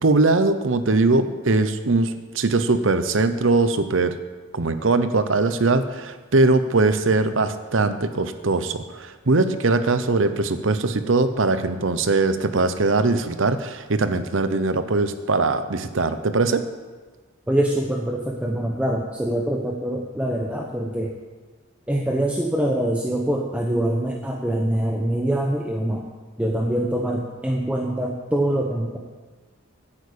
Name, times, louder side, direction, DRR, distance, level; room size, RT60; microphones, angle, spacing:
voice 1, 0.0-4.1 4.5-16.6, right 3 dB, 70° right, 10 dB, 0.8 m, -21 dB
voice 2, 17.5-21.1 21.9-26.1 26.4-29.0, right 1 dB, 5° right, -1 dB, 0.9 m, -24 dB
9.9 x 8.3 x 8.6 m, 1.4 s
head